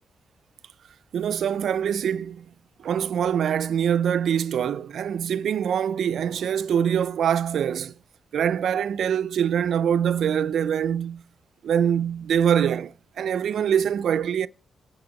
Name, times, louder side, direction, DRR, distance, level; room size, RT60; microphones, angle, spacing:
voice 1, 1.1-2.5 2.8-7.9 8.3-11.2 11.6-14.5, right 8 dB, 75° right, 0.3 m, -24 dB
8.6 x 5.8 x 6.2 m
wide cardioid pair, 130°, 0 cm